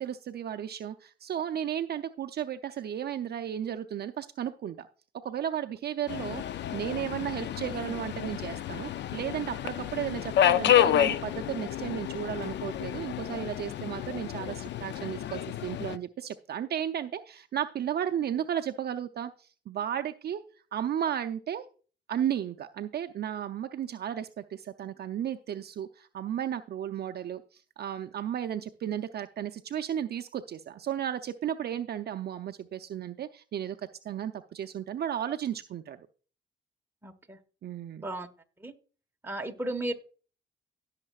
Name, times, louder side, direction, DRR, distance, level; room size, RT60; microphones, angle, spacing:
voice 1, 0.0-4.9 5.2-6.4 6.7-20.4 20.7-21.6 22.1-33.8 34.0-36.0 37.6-38.1, right 10 dB, 55° right, 7 dB, 0.5 m, -34 dB
Subway metro underground, 6.1-16.0, left 11 dB, 65° left, 0.5 m, -29 dB
voice 2, 37.0-37.4 38.0-38.3 38.6-38.7 39.2-39.9, right 1 dB, 10° right, 4 dB, 1.3 m, -34 dB
17.0 x 6.5 x 2.4 m, 0.40 s
cardioid pair, 90°, 20 cm